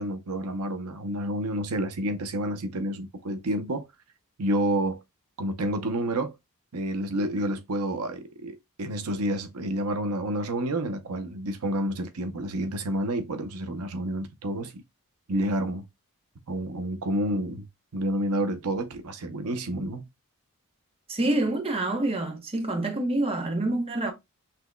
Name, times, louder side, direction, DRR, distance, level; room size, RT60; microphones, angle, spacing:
voice 1, 0.0-3.9 4.4-5.0 5.4-6.4 6.7-14.8 15.3-15.9 16.5-17.7 17.9-20.1, right 1 dB, 90° right, 0.7 m, -29 dB
voice 2, 21.1-24.1, right 2 dB, 25° right, 0.9 m, -27 dB
6.0 x 2.9 x 2.2 m
head